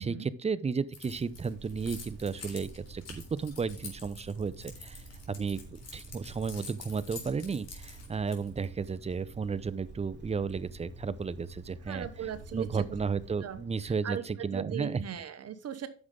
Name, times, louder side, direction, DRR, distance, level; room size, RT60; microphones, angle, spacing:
voice 1, 0.0-12.1 12.5-15.0, right 5 dB, 20° right, 15 dB, 0.6 m, -33 dB
Keys jangling, 0.9-8.7, left 5 dB, 55° left, 3.6 m, -47 dB
Wind, 1.1-13.9, right 3 dB, 35° right, 3.2 m, -49 dB
voice 2, 11.9-13.0 13.4-13.6 13.8-15.9, right 8 dB, 55° right, 11 dB, 1.0 m, -38 dB
9.6 x 6.7 x 3.8 m, 0.40 s
cardioid pair, 90°, 30 cm